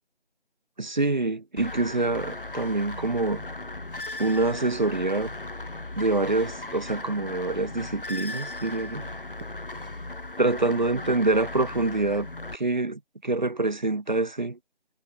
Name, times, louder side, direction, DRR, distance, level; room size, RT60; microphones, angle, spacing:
voice 1, 0.8-3.4 4.2-5.3 6.0-9.1 10.4-12.3 12.5-14.6, right 2 dB, 45° right, 6.2 m, -26 dB
sound 1, 1.6-12.6, left 2 dB, 55° left, 7.6 m, -37 dB
figure-of-eight pair, 175°, 33 cm